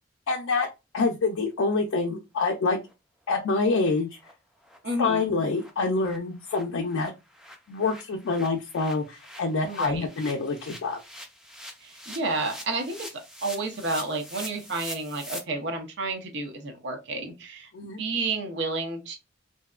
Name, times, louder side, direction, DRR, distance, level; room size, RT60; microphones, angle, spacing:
voice 1, 0.3-0.7 0.9-2.8 3.3-4.1 5.0-7.1 7.7-11.0 17.7-18.0, left 3 dB, 85° left, 1 dB, 0.4 m, -26 dB
sound 1, 2.8-2.9 3.3-3.4 3.7-3.9 4.2-4.3 4.6-4.8 5.1-5.2 5.5-15.4, equal, 5° right, 0.3 m, -44 dB
voice 2, 4.8-5.3 9.7-10.0 11.8-13.1 13.4-19.2, right 2 dB, 60° right, 5 dB, 0.6 m, -31 dB
2.7 x 2.1 x 2.3 m, 0.25 s
head